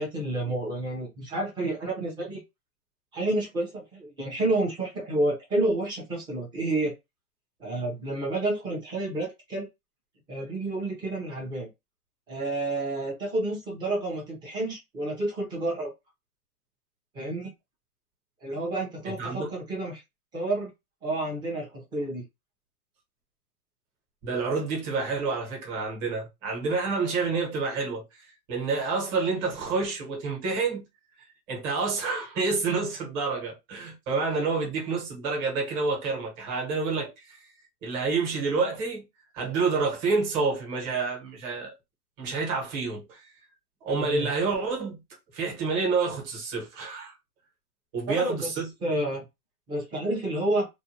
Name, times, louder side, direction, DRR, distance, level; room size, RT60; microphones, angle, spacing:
voice 1, 0.0-2.4 3.1-6.9 7.6-9.7 10.3-11.7 12.3-15.9 17.1-17.5 18.4-20.0 20.3-20.7 21.0-22.3 44.0-44.3 48.1-48.5 48.8-49.2 49.7-50.7, right 2 dB, 10° right, 0.6 m, -29 dB
voice 2, 19.1-19.5 24.2-30.8 31.2-37.5 37.8-39.0 39.3-41.7 42.2-43.3 43.8-45.0 45.3-47.1 47.9-48.7, right 4 dB, 30° right, 1.1 m, -28 dB
2.6 x 2.2 x 2.8 m
hypercardioid pair, 150°, 45 cm